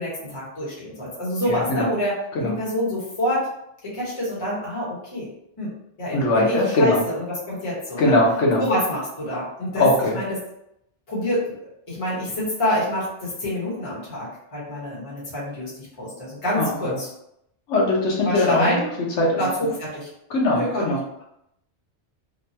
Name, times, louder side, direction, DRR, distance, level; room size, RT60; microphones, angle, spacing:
voice 1, 0.0-3.5 3.8-5.3 5.6-5.7 6.0-8.2 8.6-9.9 10.1-10.4 11.1-11.6 11.9-17.1 18.2-18.9 19.4-20.1 20.5-20.9, equal, 30° left, -7 dB, 1.2 m, -27 dB
voice 2, 1.5-1.9 2.3-2.6 6.1-7.0 8.0-8.7 9.8-10.1 16.6-17.0 17.7-18.7 19.2-19.5 20.3-21.2, left 2 dB, 85° left, -2 dB, 1.1 m, -21 dB
3.2 x 2.2 x 2.7 m, 0.78 s
omnidirectional pair, 1.2 m